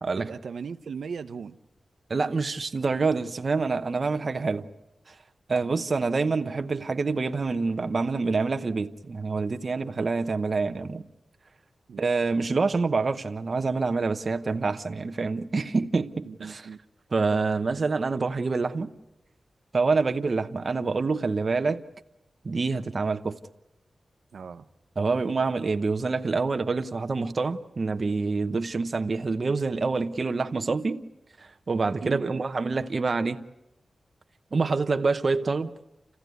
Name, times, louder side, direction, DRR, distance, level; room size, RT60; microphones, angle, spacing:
voice 1, 0.2-1.6 11.9-12.0 16.2-16.8 24.3-24.6 32.0-32.2, right 6 dB, 90° right, 0.8 m, -37 dB
voice 2, 2.1-4.7 5.5-11.0 12.0-16.7 17.1-18.9 19.7-21.8 22.4-23.4 25.0-31.0 31.4-33.4 34.5-35.7, right 4 dB, 40° right, 0.8 m, -26 dB
29.0 x 15.5 x 9.3 m
wide cardioid pair, 175°, 0 cm